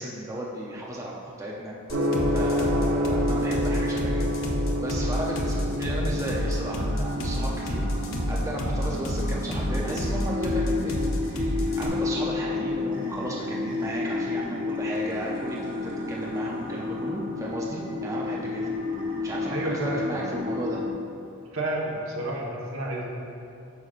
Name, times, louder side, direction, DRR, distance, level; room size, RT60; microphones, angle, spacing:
voice 1, 0.0-1.7 2.3-4.3 4.8-11.0 11.3-18.7 19.2-20.8, right 1 dB, 15° right, -4 dB, 0.5 m, -34 dB
sound 1, 1.9-11.9, left 1 dB, 65° left, 0.8 m, -29 dB
Gong, 1.9-19.8, equal, 80° right, 0.8 m, -33 dB
sound 2, 4.6-20.9, left 3 dB, 40° right, 1.3 m, -32 dB
voice 2, 19.5-20.0 21.5-23.1, right 1 dB, 65° right, -3 dB, 1.2 m, -30 dB
9.3 x 6.2 x 2.5 m, 2.6 s
head